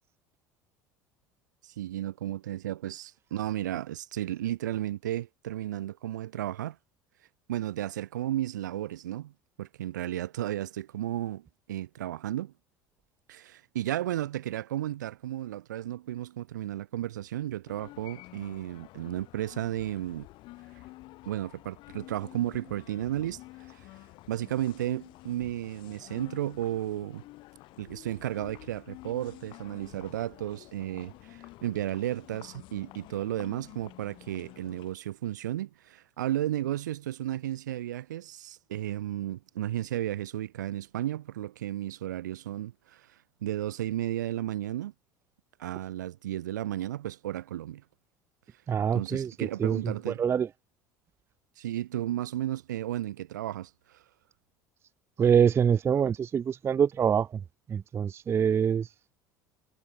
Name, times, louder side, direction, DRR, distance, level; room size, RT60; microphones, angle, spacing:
voice 1, 1.6-6.8 7.5-9.3 9.6-12.5 13.3-20.3 21.3-23.4 23.8-23.9 24.3-27.2 27.8-43.1 43.4-44.9 45.6-47.8 48.9-50.2 51.6-53.7, right 13 dB, 75° right, 0.8 m, -33 dB
sound 1, 17.7-34.9, left 19 dB, 55° left, 2.1 m, -50 dB
voice 2, 48.7-50.5 55.2-57.4 57.7-58.9, right 7 dB, 25° right, 0.3 m, -25 dB
figure-of-eight pair, 65°, 10 cm